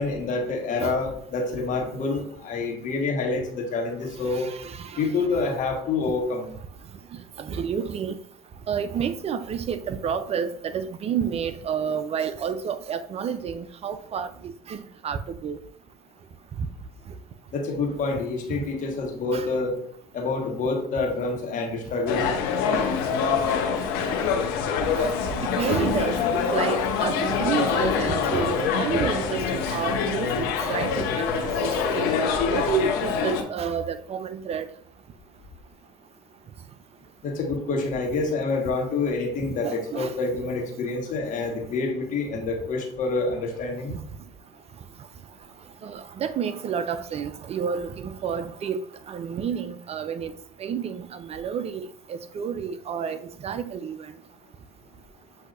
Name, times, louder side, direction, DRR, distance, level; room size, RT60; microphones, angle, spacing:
voice 1, 0.0-4.5 5.0-6.5 17.5-19.8 20.1-22.3 37.2-44.0, left 3 dB, 50° left, 1.4 m, -27 dB
voice 2, 4.3-5.4 7.4-8.2 8.7-14.3 14.7-15.6 16.6-16.7 19.3-19.5 25.0-25.1 25.4-32.1 32.5-34.7 39.6-40.2 45.8-48.8 49.1-50.3 50.6-54.1, right 7 dB, 40° right, 0.4 m, -30 dB
sound 1, 22.1-33.4, left 6 dB, 75° left, 0.7 m, -25 dB
7.6 x 2.7 x 2.5 m
hypercardioid pair, 70°, 16 cm